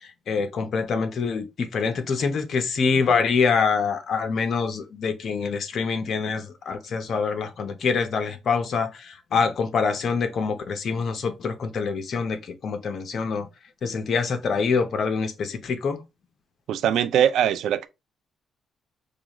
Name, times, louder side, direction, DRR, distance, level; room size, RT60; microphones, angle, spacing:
voice 1, 0.0-13.5 13.8-16.0, left 5 dB, 55° left, 0.8 m, -25 dB
voice 2, 16.7-17.9, right 9 dB, 75° right, 0.4 m, -21 dB
4.8 x 2.4 x 3.0 m
cardioid pair, 90°, 0 cm